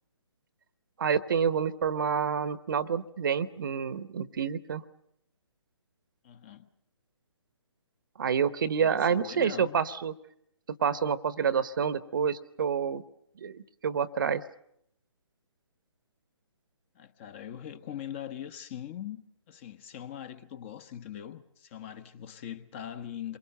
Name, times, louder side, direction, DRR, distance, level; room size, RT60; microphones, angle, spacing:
voice 1, 1.0-4.8 8.2-10.1 10.8-13.0 13.4-14.4, right 7 dB, 45° right, 1.0 m, -28 dB
voice 2, 6.2-6.7 8.8-9.8 16.9-23.4, left 10 dB, 25° left, 1.1 m, -42 dB
28.0 x 23.0 x 6.7 m
figure-of-eight pair, 135°, 15 cm